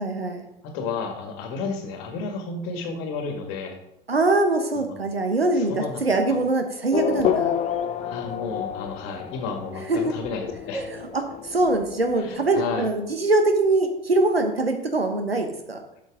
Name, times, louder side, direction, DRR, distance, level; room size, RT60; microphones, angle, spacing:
voice 1, 0.0-0.5 4.1-7.6 9.9-10.1 10.7-15.8, right 2 dB, 85° right, 5 dB, 1.3 m, -23 dB
voice 2, 0.6-3.8 4.8-4.9 5.6-6.4 8.0-10.8 12.2-12.9, left 4 dB, 45° left, 4 dB, 1.9 m, -32 dB
Race car auto racing / Accelerating revving vroom, 6.9-13.0, left 9 dB, 25° left, 0.6 m, -29 dB
11.5 x 6.2 x 3.7 m, 0.81 s
figure-of-eight pair, 85°, 29 cm